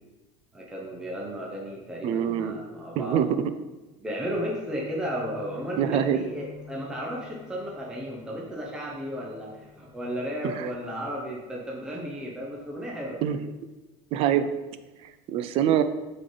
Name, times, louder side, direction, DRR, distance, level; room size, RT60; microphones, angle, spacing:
voice 1, 0.5-3.2 4.0-13.2, equal, 5° right, -3 dB, 0.7 m, -34 dB
voice 2, 2.0-2.6 3.0-3.4 5.8-6.2 10.4-10.7 13.2-13.4 14.1-14.5 15.0-15.8, right 10 dB, 40° right, 11 dB, 0.4 m, -24 dB
sound 1, 4.7-11.2 11.5-11.8 12.2-12.7 13.1-13.2, left 6 dB, 50° left, 0.8 m, -48 dB
8.0 x 3.8 x 3.9 m, 1.1 s
cardioid pair, 170°, 15 cm